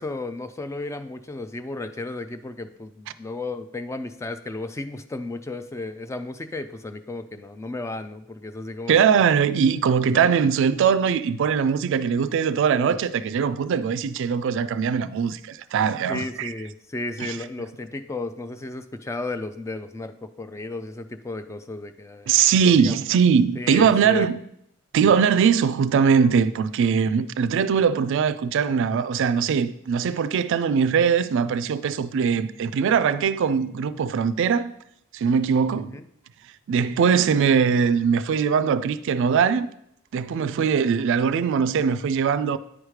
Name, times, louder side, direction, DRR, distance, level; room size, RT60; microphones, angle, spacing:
voice 1, 0.0-9.0 10.1-10.4 12.8-13.0 13.6-13.7 16.1-22.4 22.6-23.0 23.6-24.3 25.1-25.3 35.9-36.0, left 2 dB, 15° left, 0.3 m, -34 dB
voice 2, 8.9-16.5 17.2-17.4 22.3-24.4 24.9-34.7 35.1-36.0 36.7-39.7 40.1-42.6, right 6 dB, 65° right, 0.3 m, -21 dB
9.8 x 4.8 x 3.2 m
head